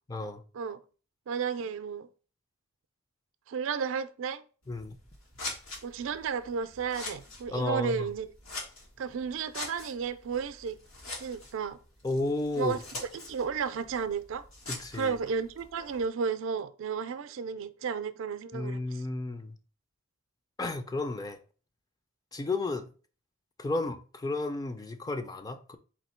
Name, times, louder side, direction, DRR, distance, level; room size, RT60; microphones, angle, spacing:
voice 1, 0.1-0.4 4.7-5.0 7.5-8.1 12.0-12.8 14.7-15.2 18.5-19.6 20.6-21.4 22.3-22.9 23.6-25.8, left 2 dB, 20° left, 0.4 m, -32 dB
voice 2, 1.3-2.1 3.5-4.4 5.8-8.3 9.0-10.8 11.1-11.8 12.6-12.8 13.1-14.4 14.9-18.8, right 6 dB, 70° right, 0.4 m, -33 dB
Scissors, 4.6-16.1, left 2 dB, 75° left, 1.4 m, -44 dB
4.3 x 2.7 x 4.3 m
head